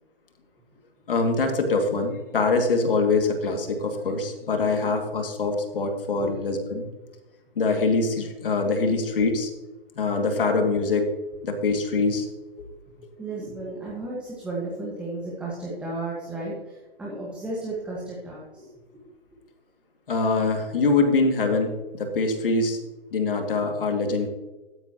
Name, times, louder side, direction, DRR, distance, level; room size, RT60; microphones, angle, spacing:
voice 1, 1.1-6.8 7.6-9.5 10.0-11.1 11.4-12.3 12.6-12.7 20.1-22.8 23.1-24.3, left 3 dB, 65° left, 4 dB, 2.4 m, -24 dB
voice 2, 13.2-19.0, right 2 dB, 5° right, -6 dB, 1.6 m, -34 dB
13.0 x 10.0 x 3.0 m, 1.1 s
hypercardioid pair, 160°, 30 cm